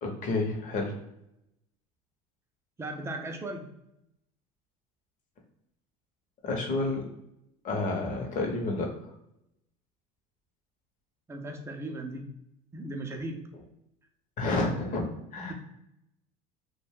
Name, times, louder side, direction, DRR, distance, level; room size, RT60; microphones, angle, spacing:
voice 1, 0.0-1.0 6.4-7.1 7.6-8.9 14.4-15.1 15.3-15.5, left 2 dB, 45° left, 2 dB, 0.8 m, -29 dB
voice 2, 2.8-3.7 11.3-12.3 12.7-13.5, right 2 dB, 15° right, 3 dB, 0.4 m, -37 dB
2.4 x 2.2 x 3.4 m, 0.82 s
supercardioid pair, 115°, 19 cm